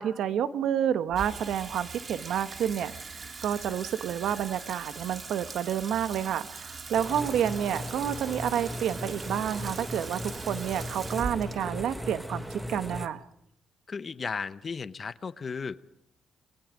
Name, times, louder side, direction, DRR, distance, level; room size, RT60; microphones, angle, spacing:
voice 1, 0.0-12.4 12.7-13.2, right 9 dB, 75° right, 12 dB, 1.1 m, -29 dB
Water tap faucet / Sink (filling or washing), 1.1-13.5, right 4 dB, 40° right, 1.8 m, -42 dB
sound 1, 6.9-13.1, equal, 10° right, 1.5 m, -38 dB
voice 2, 13.9-16.0, left 5 dB, 40° left, 15 dB, 0.9 m, -35 dB
27.5 x 21.5 x 5.1 m, 0.77 s
cardioid pair, 90°, 0 cm